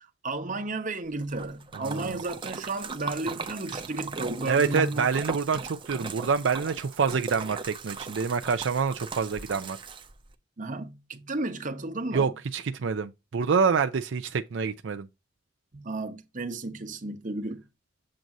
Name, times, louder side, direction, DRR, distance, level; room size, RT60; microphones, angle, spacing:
voice 1, 0.0-5.1 10.6-12.3 15.7-17.6, right 2 dB, 45° right, 1.0 m, -33 dB
Splash splatter, 1.2-10.3, right 4 dB, 25° right, 0.7 m, -39 dB
voice 2, 1.8-2.2 4.5-9.8 12.1-15.1, right 5 dB, 75° right, 0.5 m, -27 dB
7.6 x 2.6 x 5.8 m
head